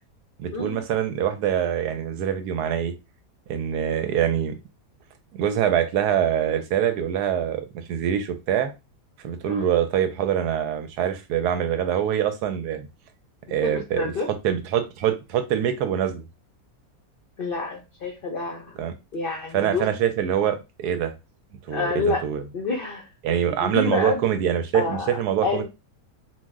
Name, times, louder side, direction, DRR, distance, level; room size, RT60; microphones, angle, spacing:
voice 1, 0.4-2.9 3.5-4.6 5.3-8.7 9.2-12.9 13.5-14.0 14.4-16.2 18.8-18.9 19.5-21.1 21.6-22.4 23.2-25.6, right 9 dB, 85° right, 8 dB, 1.1 m, -24 dB
voice 2, 13.5-14.3 17.4-18.8 19.1-19.8 21.7-22.2 22.5-24.2 24.7-25.6, left 4 dB, 55° left, -1 dB, 0.6 m, -28 dB
2.7 x 2.0 x 3.4 m, 0.26 s
omnidirectional pair, 1.7 m